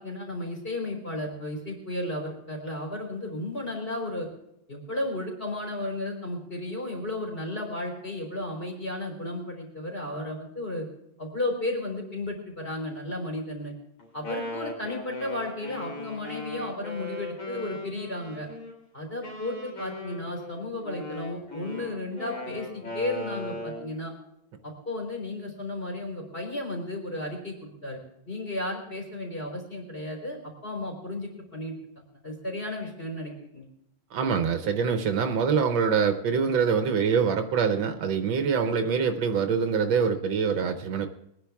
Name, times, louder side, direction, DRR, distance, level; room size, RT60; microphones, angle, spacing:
voice 1, 0.0-4.3 4.7-10.9 11.2-13.7 14.1-18.5 18.9-24.1 24.6-28.0 28.3-30.4 30.6-31.7 32.2-33.7, left 1 dB, 25° left, 0 dB, 4.1 m, -34 dB
Wind instrument woodwind instrument, 14.0-18.7 19.2-23.9, left 2 dB, 75° left, 4.3 m, -38 dB
voice 2, 34.1-41.1, right 6 dB, 75° right, 6 dB, 1.7 m, -25 dB
23.0 x 10.0 x 3.5 m, 0.78 s
omnidirectional pair, 2.2 m